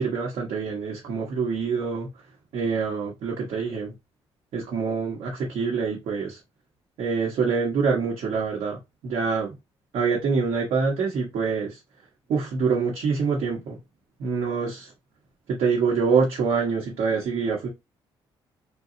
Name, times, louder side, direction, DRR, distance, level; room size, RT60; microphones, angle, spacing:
voice 1, 0.0-2.1 2.5-3.9 4.5-6.4 7.0-8.8 9.0-9.5 9.9-11.8 12.3-13.8 14.2-14.9 15.5-17.7, right 5 dB, 70° right, 0.9 m, -25 dB
2.7 x 2.2 x 2.5 m
supercardioid pair, 75°, 10 cm